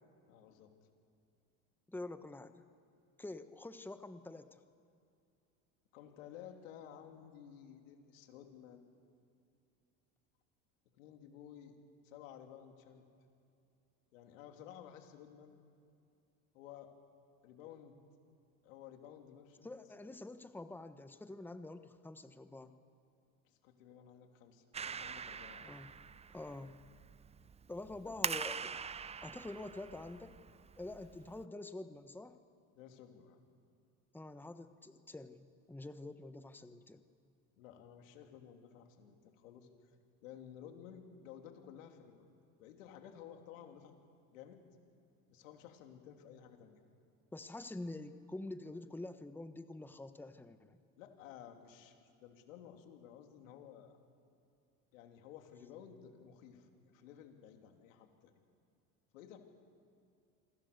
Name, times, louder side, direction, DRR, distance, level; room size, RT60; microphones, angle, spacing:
voice 1, 0.3-0.7 5.9-8.9 10.9-11.8 12.0-13.0 14.1-15.6 16.5-16.9 17.4-18.0 18.6-19.7 23.4-25.8 28.0-28.2 32.7-33.4 37.6-39.7 40.2-42.3 42.6-43.9 44.3-44.6 45.3-46.8 51.0-54.0 54.9-58.3 59.1-59.4, left 9 dB, 85° left, 4 dB, 3.1 m, -54 dB
voice 2, 1.9-2.6 3.2-4.6 19.6-22.7 25.6-25.9 26.3-26.8 27.7-28.8 29.2-30.4 30.8-32.4 34.1-37.0 47.3-50.8, left 2 dB, 5° left, 9 dB, 1.2 m, -47 dB
Clapping, 24.7-31.4, right 6 dB, 15° right, 0.5 m, -44 dB
27.5 x 23.5 x 6.8 m, 2.5 s
supercardioid pair, 95°, 38 cm